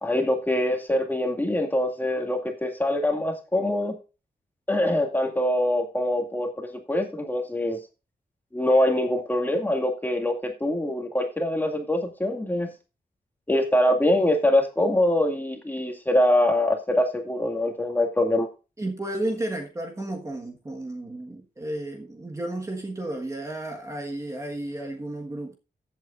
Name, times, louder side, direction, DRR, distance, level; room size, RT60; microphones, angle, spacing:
voice 1, 0.0-3.9 4.7-7.8 8.5-12.7 13.5-18.5, left 1 dB, 10° left, 2.2 m, -24 dB
voice 2, 18.8-25.6, right 1 dB, 20° right, 1.5 m, -32 dB
15.5 x 8.2 x 2.5 m
wide cardioid pair, 175°, 16 cm